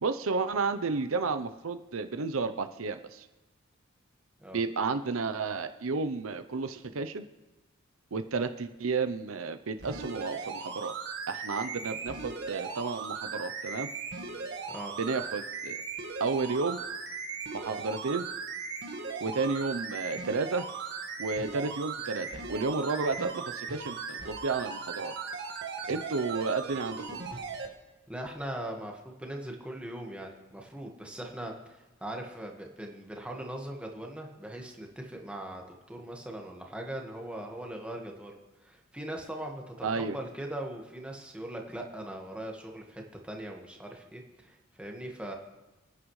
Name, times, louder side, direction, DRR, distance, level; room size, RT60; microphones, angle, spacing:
voice 1, 0.0-3.2 4.5-7.2 8.1-10.9 11.3-13.9 15.0-15.8 16.2-16.8 17.5-18.3 19.2-20.6 21.2-25.1 25.9-27.0 39.8-40.2, right 4 dB, 80° right, 10 dB, 0.7 m, -32 dB
sound 1, 9.8-27.7 28.3-28.4, right 5 dB, 55° right, 1.7 m, -38 dB
voice 2, 28.1-45.3, right 1 dB, 5° right, 1 dB, 1.6 m, -40 dB
29.0 x 9.8 x 3.2 m, 1.1 s
head